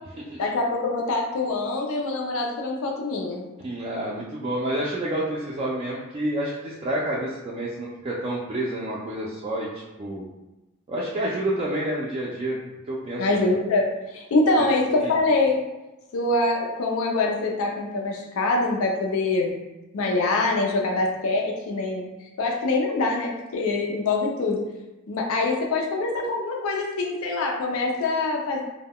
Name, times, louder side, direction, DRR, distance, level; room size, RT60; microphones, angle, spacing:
voice 1, 0.4-3.4 13.2-15.6 16.1-19.6 19.9-22.1 22.4-24.6 25.1-28.6, left 2 dB, 90° left, 0 dB, 0.4 m, -24 dB
voice 2, 3.6-10.2 10.9-12.6 12.9-13.3 14.6-14.7 15.0-15.2, right 1 dB, 30° right, -5 dB, 0.3 m, -29 dB
2.2 x 2.1 x 3.5 m, 1.0 s
head